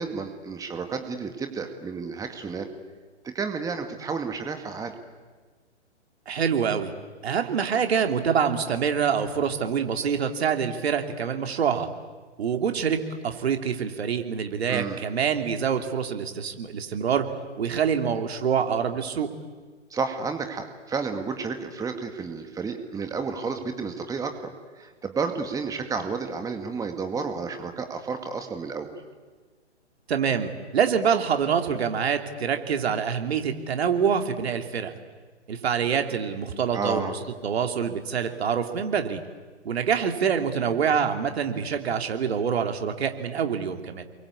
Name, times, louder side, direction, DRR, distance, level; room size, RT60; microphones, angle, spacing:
voice 1, 0.0-2.7 3.3-5.0 14.7-15.0 19.9-28.9 36.7-37.1, right 5 dB, 10° right, 6 dB, 2.1 m, -31 dB
voice 2, 6.3-6.9 7.2-11.9 12.4-17.3 17.6-19.3 30.1-34.9 35.5-39.2 39.6-44.0, right 7 dB, 60° right, 5 dB, 3.1 m, -26 dB
30.0 x 23.0 x 8.5 m, 1.4 s
figure-of-eight pair, 130°, 35 cm